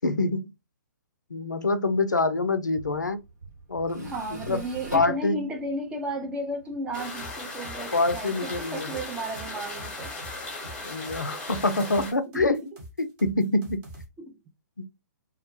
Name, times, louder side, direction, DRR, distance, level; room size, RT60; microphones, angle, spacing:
voice 1, 0.0-0.5 1.3-3.2 3.7-4.6 4.9-5.5 7.9-8.9 10.8-12.6 13.0-13.8 14.8-14.9, left 2 dB, 85° left, 0.4 m, -26 dB
Tools, 2.5-10.5, right 2 dB, 75° right, 1.2 m, -47 dB
voice 2, 4.0-10.1 12.3-12.7 14.2-14.4, right 1 dB, 10° right, 0.3 m, -34 dB
sound 1, 6.9-12.1, left 2 dB, 10° left, 0.8 m, -37 dB
sound 2, 7.2-14.0, right 1 dB, 30° right, 0.8 m, -45 dB
2.2 x 2.1 x 2.9 m
figure-of-eight pair, 120°, 10 cm